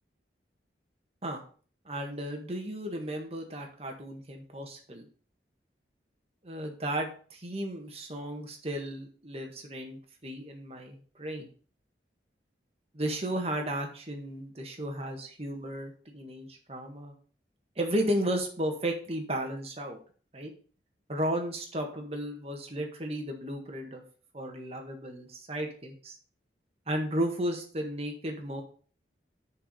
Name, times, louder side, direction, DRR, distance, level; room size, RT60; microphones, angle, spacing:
voice 1, 1.8-5.1 6.4-11.5 12.9-17.1 17.7-20.0 20.3-20.5 21.1-24.0 24.3-26.2 26.9-28.6, right 1 dB, 35° right, 2 dB, 1.7 m, -34 dB
6.8 x 4.8 x 6.9 m, 0.42 s
head